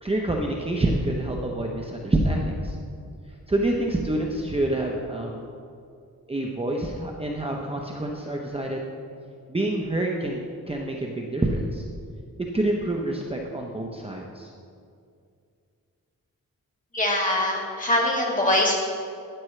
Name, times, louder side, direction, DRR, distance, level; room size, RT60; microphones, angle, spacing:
voice 1, 0.0-2.8 3.5-5.4 6.3-8.8 9.5-10.4 10.7-11.8 12.5-14.5, right 1 dB, 15° right, 0 dB, 0.8 m, -27 dB
voice 2, 16.9-18.7, left 1 dB, 20° left, -3 dB, 2.3 m, -23 dB
12.5 x 10.0 x 3.3 m, 2.4 s
wide cardioid pair, 110°, 35 cm